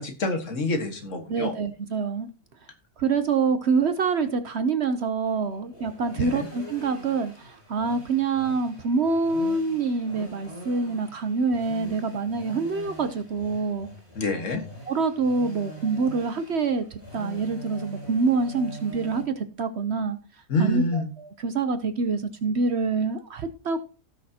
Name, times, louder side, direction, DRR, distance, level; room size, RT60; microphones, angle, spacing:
voice 1, 0.0-1.5 6.2-6.5 14.2-14.6 20.5-21.1, left 2 dB, 60° left, 5 dB, 1.8 m, -27 dB
voice 2, 1.3-2.3 3.0-13.9 14.9-20.2 20.6-23.8, right 4 dB, 55° right, 10 dB, 0.9 m, -26 dB
sound 1, 5.2-19.2, equal, 85° left, 7.2 m, -43 dB
17.0 x 6.4 x 2.8 m, 0.35 s
omnidirectional pair, 1.5 m